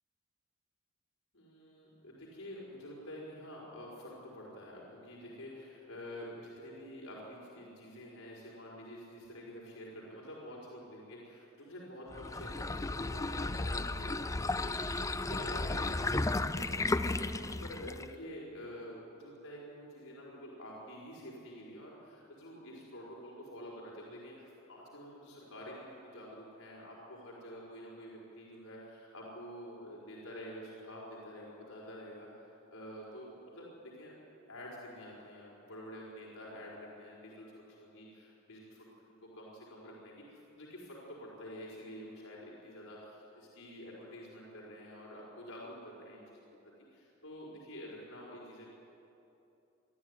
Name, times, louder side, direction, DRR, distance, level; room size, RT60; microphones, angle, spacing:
voice 1, 1.3-34.1 34.5-46.5 46.9-48.7, equal, 85° left, -5 dB, 4.9 m, -48 dB
sound 1, 12.1-18.1, left 2 dB, 15° left, 0.5 m, -34 dB
23.5 x 13.0 x 9.8 m, 2.9 s
head